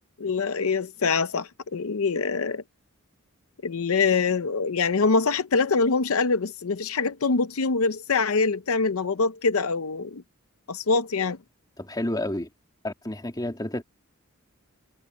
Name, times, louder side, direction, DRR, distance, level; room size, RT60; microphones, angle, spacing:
voice 1, 0.2-2.6 3.6-10.2 10.7-11.4, left 4 dB, 80° left, 0.7 m, -24 dB
voice 2, 11.8-12.5 12.8-13.8, left 1 dB, 20° left, 2.8 m, -30 dB
head